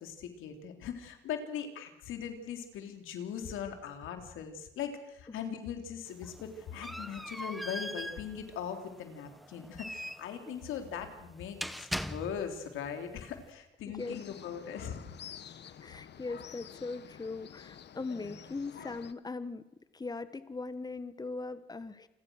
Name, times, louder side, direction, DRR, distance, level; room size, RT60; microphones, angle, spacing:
voice 1, 0.0-15.0 18.1-18.3, left 8 dB, 85° left, 6 dB, 3.6 m, -40 dB
sound 1, 6.1-12.7, equal, ahead, 1.3 m, -41 dB
voice 2, 13.9-14.2 15.6-19.7 19.9-22.1, left 3 dB, 20° left, 13 dB, 1.3 m, -40 dB
sound 2, 14.0-19.1, left 9 dB, 60° left, 1.4 m, -50 dB
29.0 x 22.5 x 6.5 m, 0.90 s
cardioid pair, 90°, 20 cm